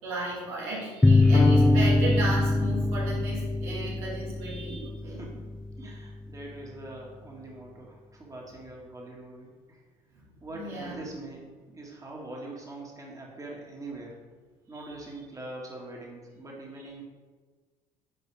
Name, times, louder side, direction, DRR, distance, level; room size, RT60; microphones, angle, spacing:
voice 1, 0.0-5.2 10.1-10.2 10.5-11.0 14.7-14.8 16.8-16.9, right 2 dB, 80° right, -6 dB, 2.3 m, -34 dB
sound 1, 1.0-6.2, left 2 dB, 5° left, 0.3 m, -24 dB
sound 2, 1.3-3.6, left 1 dB, 35° left, 1.2 m, -29 dB
voice 2, 5.0-9.8 10.4-14.2 14.7-17.0, right 2 dB, 20° right, -2 dB, 1.9 m, -43 dB
9.5 x 4.6 x 3.5 m, 1.4 s
hypercardioid pair, 65°, 16 cm